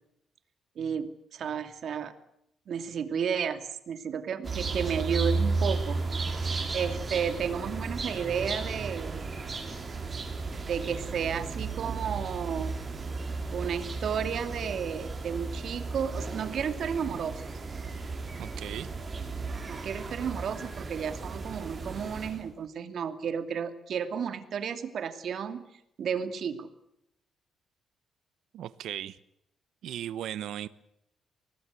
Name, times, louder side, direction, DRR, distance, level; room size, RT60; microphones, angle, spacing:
voice 1, 0.8-2.1 2.7-6.0 6.7-9.2 10.7-12.7 13.5-17.4 19.7-25.7 26.0-26.7, right 7 dB, 55° right, 9 dB, 2.7 m, -32 dB
sound 1, 4.4-22.5, right 4 dB, 25° right, 5.1 m, -34 dB
voice 2, 18.4-18.9 28.5-29.2 29.8-30.7, right 11 dB, 85° right, 15 dB, 0.9 m, -37 dB
24.5 x 19.5 x 8.3 m, 0.78 s
cardioid pair, 140°, 0 cm